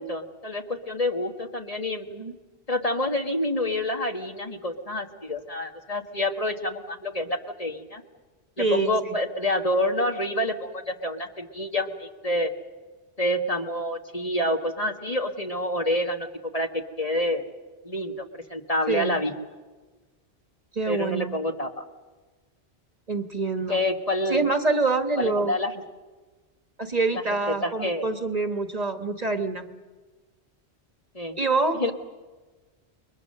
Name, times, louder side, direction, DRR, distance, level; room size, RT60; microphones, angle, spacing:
voice 1, 0.0-2.1 2.7-8.0 8.6-12.5 13.2-16.3 16.5-17.4 17.8-18.2 18.5-19.3 20.9-21.8 23.7-24.4 25.2-25.7 27.1-28.1 31.1-31.4 31.8-31.9, left 1 dB, 35° left, 4 dB, 1.5 m, -28 dB
voice 2, 8.6-8.9 18.9-19.2 20.7-21.3 23.1-23.8 24.3-25.6 26.8-29.6 31.4-31.9, right 3 dB, 35° right, 6 dB, 1.4 m, -26 dB
29.0 x 22.5 x 6.6 m, 1.3 s
omnidirectional pair, 1.1 m